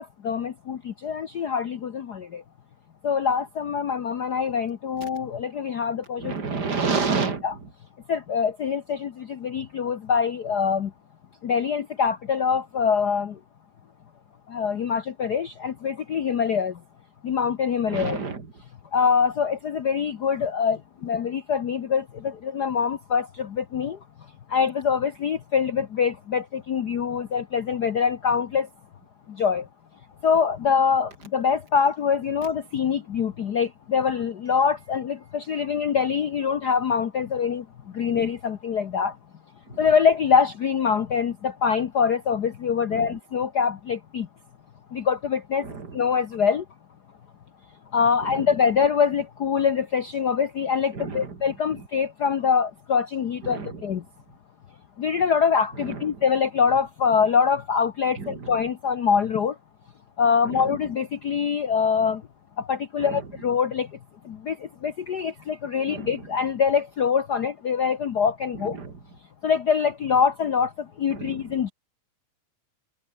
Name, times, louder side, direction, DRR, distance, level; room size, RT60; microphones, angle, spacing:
voice 1, 0.0-2.4 3.0-6.3 7.4-7.5 8.1-10.9 11.4-13.4 14.5-16.8 17.2-18.2 18.9-24.0 24.5-28.7 29.3-29.7 30.2-37.6 37.9-39.2 39.8-44.3 44.9-46.6 47.9-54.0 55.0-59.5 60.2-62.2 62.6-63.9 64.2-68.8 69.4-71.7, left 6 dB, 75° left, 0.9 m, -24 dB
voice 2, 6.2-7.7 17.9-18.5 38.0-38.3 39.7-39.8 42.9-43.2 45.6-46.0 48.2-48.6 50.9-51.9 53.4-53.9 55.7-56.2 58.2-58.6 60.4-60.8 63.0-63.3 65.9-66.3 68.5-69.0 71.1-71.5, right 4 dB, 35° right, 3.5 m, -31 dB
omnidirectional pair, 3.3 m